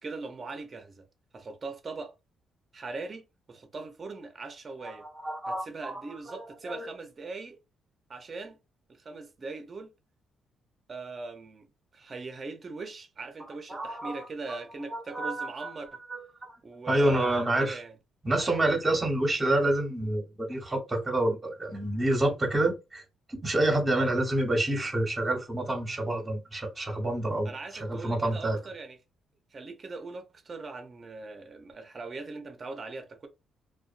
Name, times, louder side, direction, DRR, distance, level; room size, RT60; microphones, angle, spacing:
voice 1, 0.0-1.0 1.3-2.1 2.7-5.1 5.5-7.6 8.1-8.6 8.9-9.9 10.9-11.7 11.9-16.0 16.6-17.9 23.9-24.1 27.4-29.0 29.5-33.3, right 3 dB, 35° right, 0.7 m, -41 dB
voice 2, 4.8-6.4 6.6-6.9 13.7-14.6 14.9-15.7 16.1-16.6 16.9-17.8 18.2-23.0 23.3-27.5 27.8-28.6, right 1 dB, 20° right, 1.2 m, -28 dB
2.5 x 2.3 x 2.5 m
cardioid pair, 90°, 0 cm